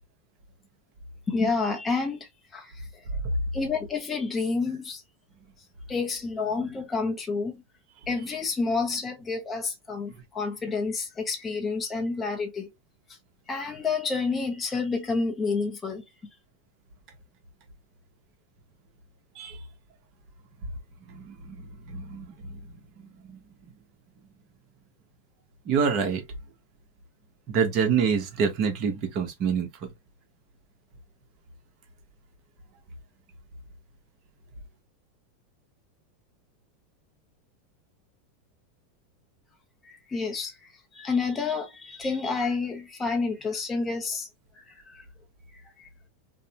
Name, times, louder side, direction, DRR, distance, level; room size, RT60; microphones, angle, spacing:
voice 1, 1.3-3.0 3.5-5.0 5.9-7.6 8.1-12.7 13.5-16.0 39.8-40.5 40.9-44.3 44.6-45.0 45.8-45.9, left 4 dB, 15° left, 0.5 m, -29 dB
voice 2, 21.1-21.6 21.9-22.6 25.7-26.2 27.5-29.7, right 6 dB, 45° right, 0.8 m, -26 dB
2.5 x 2.0 x 2.7 m
supercardioid pair, 140°, 0 cm